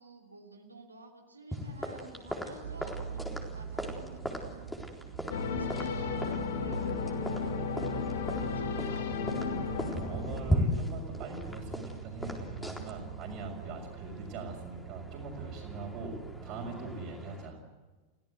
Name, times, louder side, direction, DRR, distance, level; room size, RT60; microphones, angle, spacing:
voice 1, 0.0-4.8 5.3-9.3, right 2 dB, 80° right, 1 dB, 3.1 m, -51 dB
sound 1, 1.5-17.5, equal, 5° left, 4.0 m, -38 dB
sound 2, 2.6-17.0, right 9 dB, 60° right, 1.2 m, -45 dB
sound 3, 5.3-10.8, left 5 dB, 60° left, 2.3 m, -34 dB
voice 2, 9.7-16.2 16.4-17.6, right 3 dB, 40° right, -4 dB, 5.2 m, -41 dB
30.0 x 17.0 x 8.1 m, 1.2 s
figure-of-eight pair, 90°, 0 cm